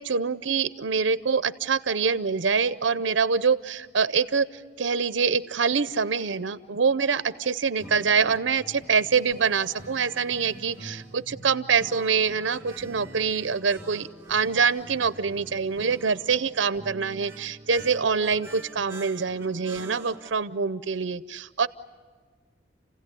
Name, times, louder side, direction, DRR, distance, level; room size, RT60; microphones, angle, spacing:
voice 1, 0.0-21.7, right 5 dB, 85° right, 14 dB, 0.7 m, -25 dB
sound 1, 7.8-20.3, right 1 dB, 15° right, 1.7 m, -45 dB
29.5 x 16.5 x 9.9 m, 1.5 s
head